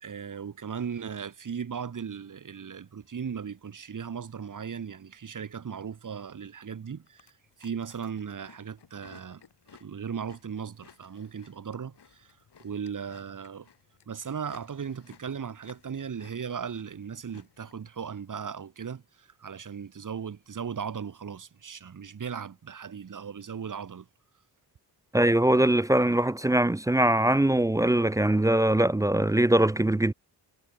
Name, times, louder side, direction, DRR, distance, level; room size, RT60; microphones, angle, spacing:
voice 1, 0.0-7.3 7.6-9.4 9.8-12.3 12.6-13.7 14.1-24.1, right 7 dB, 45° right, 1.4 m, -37 dB
Chewing mastication, 7.1-17.9, left 7 dB, 65° left, 5.9 m, -58 dB
voice 2, 25.1-30.1, right 1 dB, 10° right, 0.4 m, -22 dB
cardioid pair, 60°, 44 cm